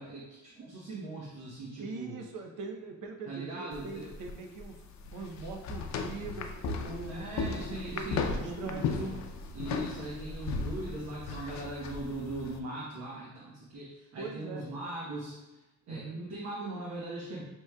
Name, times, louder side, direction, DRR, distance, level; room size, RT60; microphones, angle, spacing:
voice 1, 0.0-2.2 3.3-4.1 7.0-9.2 9.5-17.4, right 2 dB, 60° right, -5 dB, 1.1 m, -40 dB
voice 2, 1.8-4.7 5.1-6.5 6.8-7.4 7.8-9.0 14.2-14.7 15.9-16.2, right 3 dB, 80° right, 3 dB, 0.8 m, -42 dB
sound 1, 3.7-12.6, left 4 dB, 65° left, 0.6 m, -36 dB
6.2 x 3.0 x 2.3 m, 1.0 s
cardioid pair, 90°, 30 cm